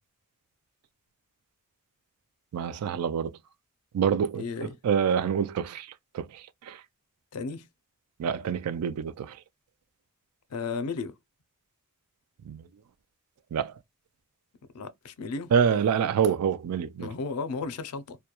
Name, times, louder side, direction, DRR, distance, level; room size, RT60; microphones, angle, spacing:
voice 1, 2.5-3.4 3.9-6.8 8.2-9.4 12.4-12.7 13.5-13.7 15.5-17.1, right 7 dB, 85° right, 0.3 m, -27 dB
voice 2, 4.4-4.7 7.3-7.6 10.5-11.1 14.7-15.5 17.0-18.2, left 4 dB, 85° left, 0.4 m, -34 dB
2.2 x 2.2 x 2.8 m
head